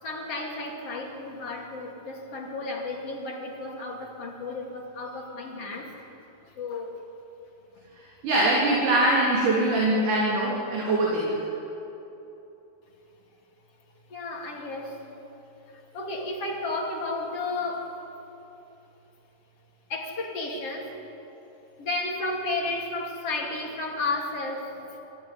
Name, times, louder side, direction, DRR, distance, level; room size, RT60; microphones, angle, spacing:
voice 1, 0.0-6.1 6.5-7.0 14.1-15.1 15.7-17.9 19.9-21.0 21.8-25.0, left 2 dB, 40° left, 0 dB, 3.3 m, -33 dB
voice 2, 8.2-11.4, right 1 dB, 55° right, -3 dB, 4.2 m, -23 dB
25.0 x 14.5 x 9.7 m, 3.0 s
omnidirectional pair, 4.6 m